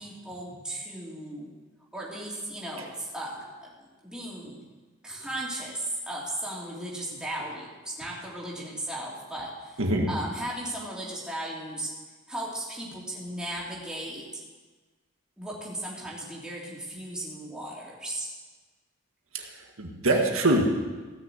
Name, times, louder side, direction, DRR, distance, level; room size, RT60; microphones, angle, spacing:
voice 1, 0.0-1.5 1.9-3.7 4.0-4.6 5.0-9.8 10.1-11.9 12.3-14.2 15.4-18.3, right 1 dB, 5° right, -5 dB, 3.0 m, -36 dB
voice 2, 9.8-10.1 19.3-20.7, right 1 dB, 85° right, 1 dB, 1.8 m, -24 dB
16.5 x 6.5 x 8.0 m, 1.3 s
head